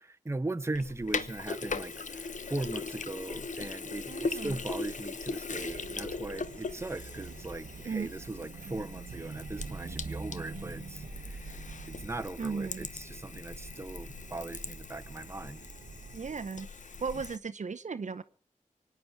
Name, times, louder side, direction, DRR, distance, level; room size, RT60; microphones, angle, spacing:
voice 1, 0.0-11.0 11.3-11.4 11.9-15.6, right 2 dB, 20° right, 0.9 m, -39 dB
Sink (filling or washing), 0.7-17.4, left 4 dB, 65° left, 1.0 m, -40 dB
voice 2, 4.1-4.5 7.8-8.1 12.4-12.9 16.1-16.7 17.0-18.2, right 5 dB, 60° right, 0.8 m, -36 dB
sound 1, 5.5-16.5, right 4 dB, 90° right, 1.2 m, -45 dB
24.0 x 9.6 x 6.0 m
cardioid pair, 55°, 14 cm